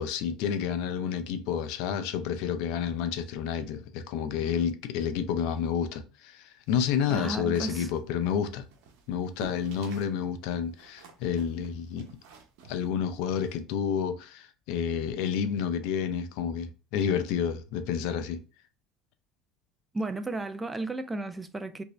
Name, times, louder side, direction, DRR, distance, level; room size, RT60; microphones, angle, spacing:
voice 1, 0.0-8.6 9.1-12.1 12.7-18.4, left 8 dB, 75° left, 0.5 m, -30 dB
sound 1, 6.8-10.2 10.4-13.6, right 5 dB, 75° right, 0.8 m, -50 dB
voice 2, 7.1-7.9 19.9-21.8, right 2 dB, 15° right, 0.4 m, -33 dB
3.1 x 2.6 x 3.0 m
supercardioid pair, 105°, 0 cm